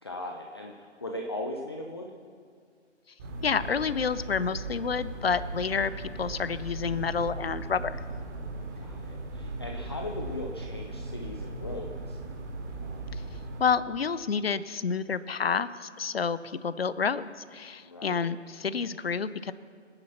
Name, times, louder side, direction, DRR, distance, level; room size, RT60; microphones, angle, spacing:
voice 1, 0.0-2.1 8.8-12.2 17.8-18.3, left 1 dB, 20° left, 1 dB, 0.6 m, -38 dB
sound 1, 3.2-13.6, right 2 dB, 15° right, 1.0 m, -38 dB
voice 2, 3.4-8.0 13.6-19.5, left 6 dB, 55° left, 15 dB, 0.7 m, -29 dB
25.0 x 10.0 x 5.8 m, 2.1 s
figure-of-eight pair, 145°, 37 cm